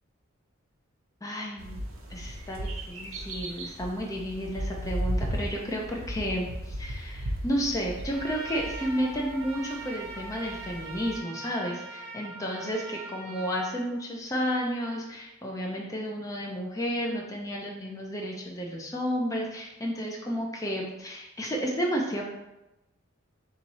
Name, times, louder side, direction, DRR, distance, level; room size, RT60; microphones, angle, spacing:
voice 1, 1.2-1.8 2.1-22.2, equal, 15° left, -1 dB, 0.5 m, -32 dB
sound 1, 1.6-11.2, equal, 70° right, 0.7 m, -36 dB
Trumpet, 8.1-13.8, right 2 dB, 50° right, 1.0 m, -41 dB
3.6 x 3.0 x 4.1 m, 0.95 s
head